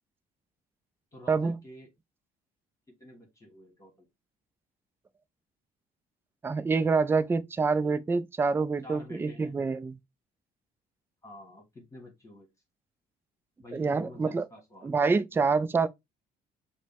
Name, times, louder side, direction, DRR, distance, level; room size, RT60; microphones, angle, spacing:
voice 1, 1.1-1.9 2.9-4.1 7.8-8.0 8.8-9.5 11.2-12.5 13.6-15.0 15.3-15.4, left 1 dB, 20° left, 1.7 m, -49 dB
voice 2, 6.4-10.0 13.7-14.5 14.8-15.9, right 4 dB, 15° right, 0.3 m, -26 dB
5.1 x 2.1 x 3.4 m
cardioid pair, 110°, 17 cm